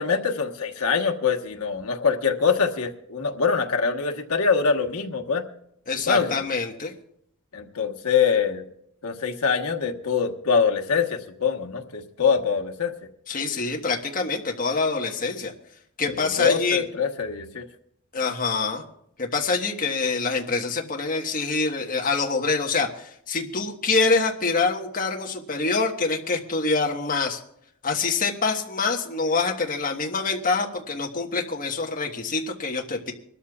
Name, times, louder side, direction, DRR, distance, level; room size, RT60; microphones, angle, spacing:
voice 1, 0.0-5.4 6.1-6.4 7.5-8.6 9.0-12.9 16.1-17.6, left 5 dB, 90° left, 2 dB, 1.3 m, -24 dB
voice 2, 5.9-6.9 13.3-15.5 16.0-16.8 18.1-18.8 19.2-27.4 27.8-33.1, left 4 dB, 40° left, 1 dB, 1.4 m, -25 dB
25.5 x 13.0 x 2.4 m, 0.71 s
head